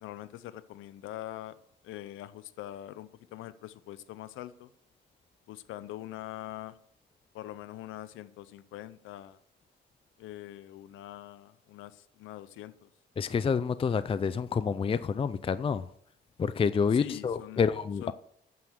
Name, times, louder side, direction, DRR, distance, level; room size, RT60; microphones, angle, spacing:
voice 1, 0.0-1.6 1.8-4.7 5.5-6.8 7.3-9.4 10.2-12.9 16.9-17.6 18.0-18.1, left 13 dB, 90° left, 0.6 m, -43 dB
voice 2, 13.2-15.9 16.4-18.1, left 6 dB, 30° left, 0.5 m, -28 dB
9.3 x 7.6 x 6.5 m
cardioid pair, 90°, 20 cm